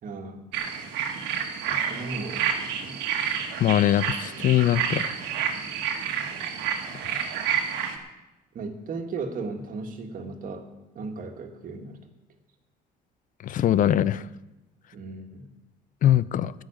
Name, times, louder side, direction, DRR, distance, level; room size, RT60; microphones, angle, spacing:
voice 1, 0.0-0.5 1.7-3.0 8.5-12.0 14.9-15.5, right 3 dB, 50° right, 5 dB, 1.8 m, -36 dB
sound 1, 0.5-8.0, right 8 dB, 80° right, 1.5 m, -29 dB
voice 2, 3.6-5.0 13.4-14.2 16.0-16.5, left 11 dB, 50° left, 18 dB, 0.5 m, -21 dB
13.0 x 6.4 x 8.8 m, 1.0 s
cardioid pair, 95°, 17 cm